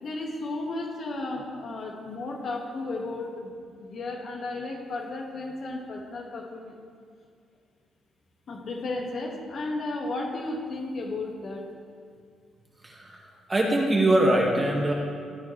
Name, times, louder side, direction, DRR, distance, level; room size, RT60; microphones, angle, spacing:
voice 1, 0.0-3.5 3.8-6.8 8.5-11.7, left 2 dB, 55° left, -1 dB, 1.8 m, -34 dB
voice 2, 12.8-14.9, right 1 dB, 25° right, -1 dB, 1.8 m, -23 dB
14.0 x 9.1 x 3.3 m, 2.2 s
cardioid pair, 90°, 0 cm